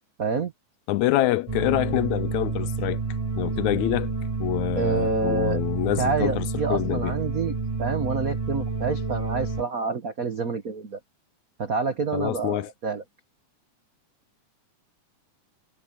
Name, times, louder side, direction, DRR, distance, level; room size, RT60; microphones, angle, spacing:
voice 1, 0.2-0.5 4.8-5.6 6.0-11.0 11.6-13.0, right 4 dB, 80° right, 0.7 m, -28 dB
voice 2, 0.9-3.0 3.4-4.1 4.4-7.2 12.1-12.7, left 15 dB, 75° left, 1.9 m, -26 dB
sound 1, 1.5-9.6, right 4 dB, 25° right, 0.7 m, -29 dB
omnidirectional pair, 3.5 m